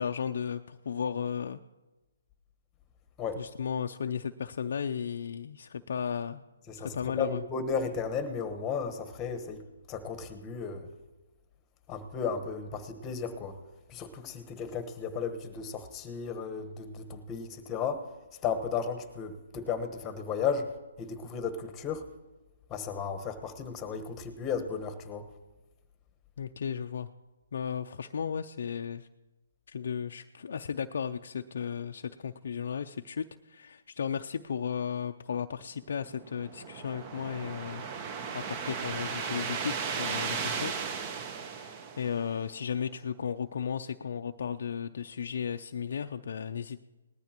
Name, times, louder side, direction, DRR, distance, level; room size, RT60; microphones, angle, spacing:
voice 1, 0.0-1.6 3.4-6.4 6.7-7.4 26.4-27.1 27.5-29.1 29.7-37.8 38.3-40.7 41.5-46.8, left 7 dB, 65° left, 6 dB, 0.4 m, -35 dB
voice 2, 6.7-9.6 9.9-10.9 11.9-13.5 13.9-18.0 18.4-20.7 21.0-22.0 22.7-25.2, left 6 dB, 20° left, 8 dB, 1.2 m, -34 dB
sound 1, 36.0-42.5, right 6 dB, 30° right, 0.9 m, -36 dB
19.5 x 13.5 x 3.0 m, 1.1 s
hypercardioid pair, 150°, 0 cm